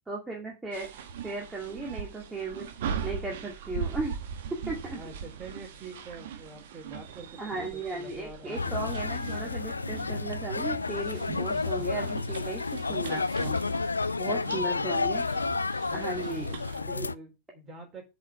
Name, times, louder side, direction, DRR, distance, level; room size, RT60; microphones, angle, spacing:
voice 1, 0.1-2.6 3.0-4.1 4.7-5.0 7.4-13.6 14.2-15.2 15.9-16.5 16.9-17.1, right 2 dB, 10° right, -2 dB, 2.2 m, -36 dB
sound 1, 0.7-16.8, right 7 dB, 55° right, 1.4 m, -40 dB
voice 2, 4.9-8.9 14.1-14.9 15.8-18.1, right 3 dB, 25° right, 2 dB, 4.2 m, -46 dB
sound 2, 8.6-17.1, left 4 dB, 80° left, 0.4 m, -31 dB
7.5 x 5.2 x 6.8 m, 0.27 s
figure-of-eight pair, 95°, 0 cm